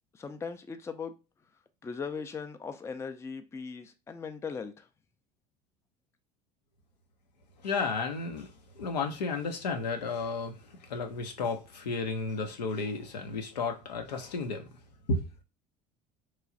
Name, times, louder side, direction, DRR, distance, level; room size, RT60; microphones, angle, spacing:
voice 1, 0.2-1.1 1.8-4.9, left 5 dB, 15° left, 0.4 m, -39 dB
voice 2, 7.6-14.7 15.1-15.3, left 3 dB, 80° left, 0.6 m, -33 dB
3.1 x 2.3 x 3.7 m
figure-of-eight pair, 65°, 21 cm